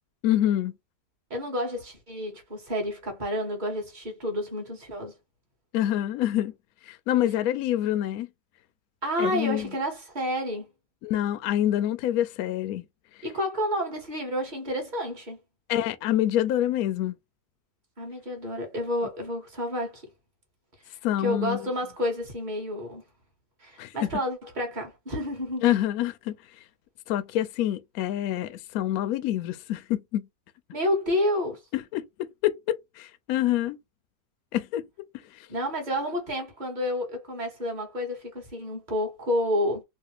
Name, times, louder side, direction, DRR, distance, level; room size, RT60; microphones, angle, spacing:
voice 1, 0.2-0.7 5.7-6.5 6.9-8.3 9.2-9.7 11.0-12.8 15.7-17.1 21.0-21.7 23.8-24.1 25.6-26.4 27.1-30.3 31.7-33.8 34.5-34.8, left 12 dB, 70° left, 0.8 m, -26 dB
voice 2, 1.3-5.1 9.0-10.7 13.2-15.4 18.0-20.0 21.2-23.0 23.6-25.6 30.7-31.6 35.5-39.8, left 1 dB, 30° right, 1.1 m, -30 dB
3.2 x 2.4 x 2.9 m
omnidirectional pair, 2.0 m